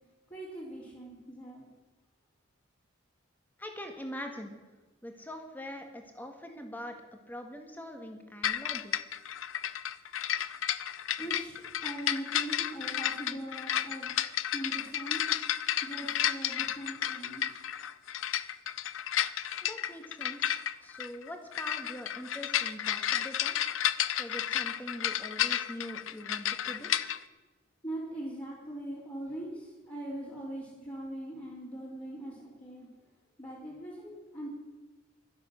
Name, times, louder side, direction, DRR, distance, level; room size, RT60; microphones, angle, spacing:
voice 1, 0.3-1.7 11.2-11.6 11.8-14.1 14.5-15.2 15.8-17.6 19.6-19.7 26.8-27.1 27.8-32.9 33.4-34.5, right 1 dB, 25° left, -8 dB, 3.7 m, -41 dB
voice 2, 3.6-4.6 5.0-7.0 7.3-9.1 19.6-23.6 24.2-26.9, equal, 10° left, 4 dB, 1.7 m, -43 dB
sound 1, 8.4-27.2, left 10 dB, 75° left, 0.6 m, -32 dB
15.0 x 12.5 x 6.4 m, 1.2 s
head